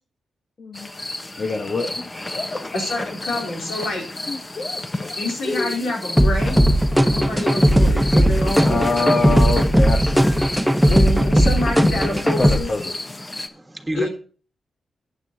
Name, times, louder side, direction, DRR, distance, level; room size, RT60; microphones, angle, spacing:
sound 1, 0.7-13.5, left 2 dB, 30° left, 1.2 m, -32 dB
voice 1, 1.4-2.1 2.3-2.6 4.3-5.1 5.4-5.7 7.7-7.8 8.6-10.3 12.1-12.9, left 2 dB, 50° left, 3 dB, 1.4 m, -25 dB
voice 2, 2.7-4.0 5.2-6.6 7.1-9.4 10.9-12.7 14.0-14.1, left 2 dB, 80° left, -1 dB, 3.9 m, -27 dB
sound 2, 6.2-12.6, equal, ahead, 1.1 m, -17 dB
voice 3, 10.4-10.8 13.2-14.1, right 2 dB, 20° right, 6 dB, 1.5 m, -32 dB
14.5 x 9.2 x 2.9 m, 0.40 s
supercardioid pair, 50°, 0 cm